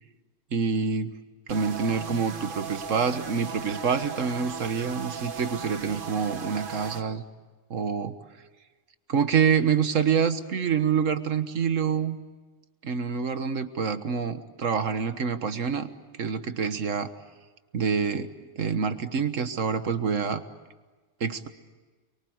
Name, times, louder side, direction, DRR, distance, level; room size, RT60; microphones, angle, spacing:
voice 1, 0.5-1.1 1.5-7.2 7.7-8.1 9.1-12.2 12.8-15.9 16.2-17.1 17.7-18.3 18.6-20.4 21.2-21.5, right 6 dB, 90° right, 10 dB, 1.7 m, -26 dB
sound 1, 1.5-7.0, right 5 dB, 45° right, 1.4 m, -37 dB
29.5 x 23.0 x 8.0 m, 1.3 s
omnidirectional pair, 1.3 m